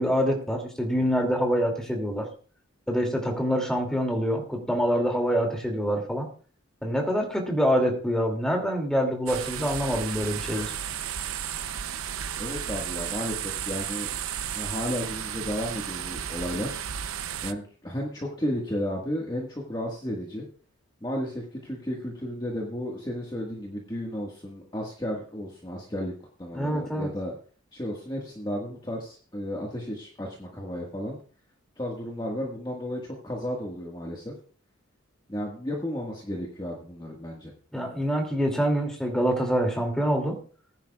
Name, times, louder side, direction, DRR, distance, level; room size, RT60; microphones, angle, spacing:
voice 1, 0.0-2.3 2.9-6.3 6.8-10.7 26.5-27.1 37.7-40.4, equal, 5° left, 1 dB, 2.6 m, -25 dB
sound 1, 9.3-17.5, right 9 dB, 85° right, 0.7 m, -33 dB
voice 2, 12.4-14.1 14.5-16.8 17.4-20.5 21.0-26.1 26.4-27.3 27.7-31.2 31.8-34.3 35.3-37.5, equal, 20° left, -2 dB, 1.7 m, -33 dB
20.0 x 10.5 x 2.4 m, 0.42 s
head